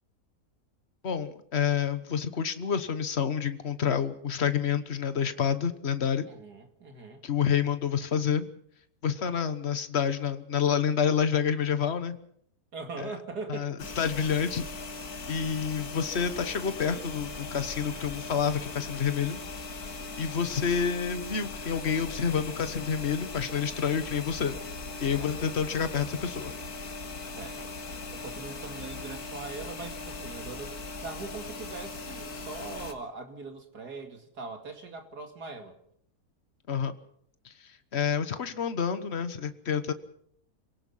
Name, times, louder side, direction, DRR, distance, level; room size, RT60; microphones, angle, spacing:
voice 1, 1.0-6.3 7.2-8.5 9.0-12.2 13.0-13.1 13.5-14.7 15.3-19.4 20.2-24.5 25.0-26.5 36.7-36.9 37.9-39.9, left 7 dB, 45° left, 11 dB, 1.4 m, -28 dB
voice 2, 6.3-7.2 12.7-13.7 25.2-25.3 27.3-27.7 28.1-30.7 31.0-35.7, right 4 dB, 90° right, 5 dB, 2.8 m, -41 dB
sound 1, 13.8-32.9, left 3 dB, 70° left, 2.2 m, -39 dB
26.5 x 18.0 x 5.6 m, 0.68 s
omnidirectional pair, 1.6 m